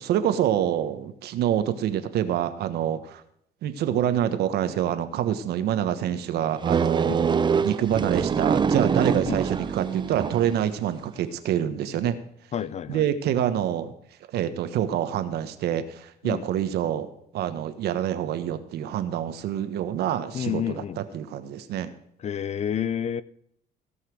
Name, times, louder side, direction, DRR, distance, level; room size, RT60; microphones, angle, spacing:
voice 1, 0.0-3.2 3.6-12.2 12.9-13.9 14.3-17.1 17.3-21.9, right 10 dB, 75° right, 10 dB, 1.3 m, -26 dB
sound 1, 6.6-10.7, right 6 dB, 25° right, 0.6 m, -24 dB
voice 2, 12.5-13.1 16.2-16.4 20.3-21.0 22.2-23.2, left 9 dB, 40° left, 18 dB, 0.6 m, -29 dB
17.0 x 5.8 x 6.3 m, 0.73 s
cardioid pair, 110°, 17 cm